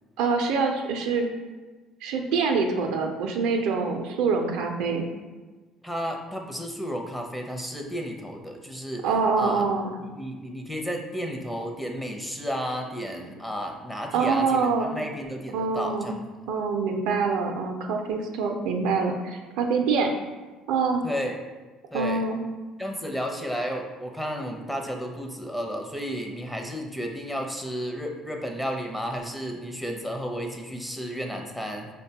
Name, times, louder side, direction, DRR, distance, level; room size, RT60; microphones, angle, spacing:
voice 1, 0.2-1.3 2.0-5.1 9.0-9.9 14.1-14.9 15.5-16.1 16.5-20.1 20.7-21.0 21.9-22.4, right 4 dB, 80° right, 3 dB, 0.4 m, -25 dB
voice 2, 5.8-9.1 9.4-16.1 21.0-21.4 21.9-22.2 22.8-31.9, equal, 5° left, 2 dB, 0.6 m, -32 dB
5.1 x 2.2 x 2.8 m, 1.3 s
supercardioid pair, 75°, 0 cm